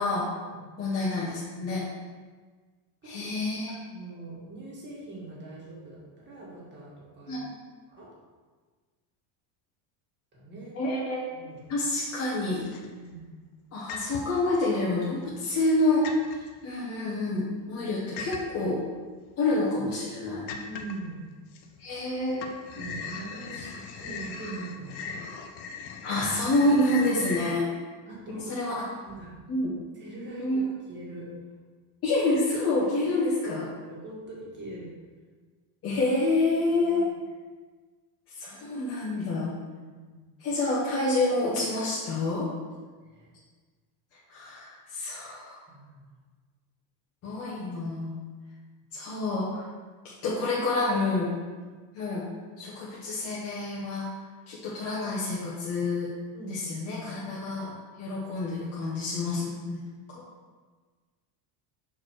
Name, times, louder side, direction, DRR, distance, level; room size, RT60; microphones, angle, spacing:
voice 1, 0.8-1.8 3.0-3.7 7.3-7.5 10.7-11.2 11.7-12.6 13.7-18.8 19.4-20.5 21.8-22.6 23.1-23.2 26.0-27.7 28.5-28.8 29.5-29.7 30.4-30.6 32.0-33.7 35.8-37.1 38.3-39.5 40.4-42.5 44.3-45.6 47.2-48.2 48.9-49.7 50.0-51.3 51.9-52.2 52.6-54.1 54.5-56.1 56.5-57.7 58.0-60.2, left 2 dB, 30° left, -7 dB, 1.1 m, -28 dB
voice 2, 3.9-7.3 7.9-8.1 10.3-10.8 11.3-11.7 12.9-13.3 20.7-21.2 22.8-25.0 28.1-28.6 29.0-29.3 30.0-31.3 33.0-33.3 33.7-34.9 36.6-37.2 39.7-40.2 43.0-43.3 45.7-46.2 51.5-51.8 56.3-56.6, right 2 dB, 20° right, -5 dB, 1.7 m, -42 dB
sound 1, 11.7-12.2 12.5-13.1 13.9-14.5 15.0-15.8 16.0-16.5 18.2-18.7 19.3-19.4 19.8-19.9 20.5-21.1 21.5-22.1 22.3-27.5, left 5 dB, 55° left, 0.7 m, -39 dB
6.0 x 4.5 x 4.6 m, 1.4 s
cardioid pair, 160°, 49 cm